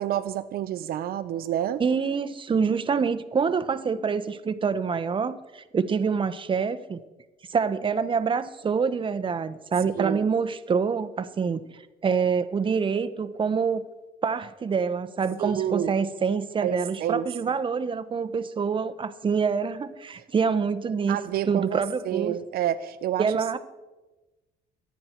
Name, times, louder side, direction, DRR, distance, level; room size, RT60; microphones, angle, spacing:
voice 1, 0.0-1.8 10.0-10.2 15.4-16.0 16.6-17.3 21.1-23.3, right 11 dB, 65° right, 11 dB, 0.6 m, -29 dB
voice 2, 1.8-7.0 7.5-13.8 14.2-21.2 21.4-22.3 23.2-23.6, right 5 dB, 30° right, 12 dB, 1.0 m, -26 dB
24.5 x 9.6 x 4.5 m, 1.1 s
cardioid pair, 110°, 17 cm